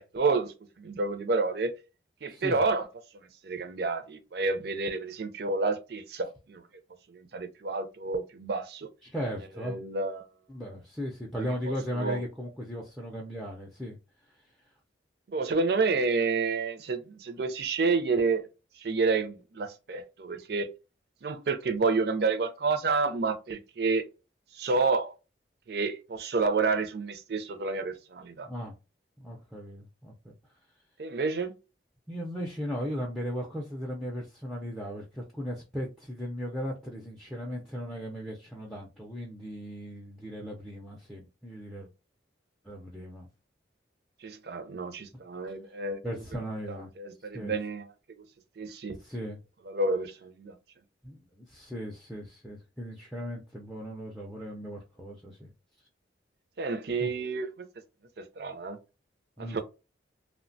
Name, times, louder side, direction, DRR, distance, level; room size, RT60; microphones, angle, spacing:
voice 1, 0.0-1.7 2.2-2.9 3.4-6.6 7.1-8.9 9.6-10.3 11.7-12.2 15.3-18.5 18.8-20.7 21.2-24.0 24.5-25.1 25.7-28.5 31.0-31.5 44.2-46.0 46.7-47.8 48.2-48.3 48.6-49.0 49.7-50.5 56.6-57.5 58.2-58.8 59.4-59.6, right 4 dB, 60° right, 0.4 m, -29 dB
voice 2, 2.3-2.6 9.0-9.8 10.5-14.0 28.4-28.7 29.2-30.3 32.1-41.9 42.6-43.3 46.0-46.9 47.3-47.5 49.0-49.4 51.0-55.5 57.0-57.1 59.4-59.6, equal, ahead, 0.4 m, -37 dB
3.1 x 2.1 x 2.5 m
head